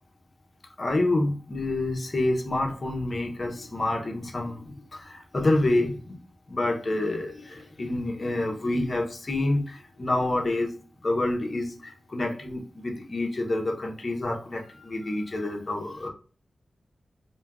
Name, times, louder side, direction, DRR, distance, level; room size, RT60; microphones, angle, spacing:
voice 1, 0.8-6.2 6.5-10.7 11.0-16.1, left 2 dB, 45° left, 1 dB, 1.0 m, -28 dB
4.3 x 2.3 x 3.5 m, 0.39 s
cardioid pair, 55°, 0 cm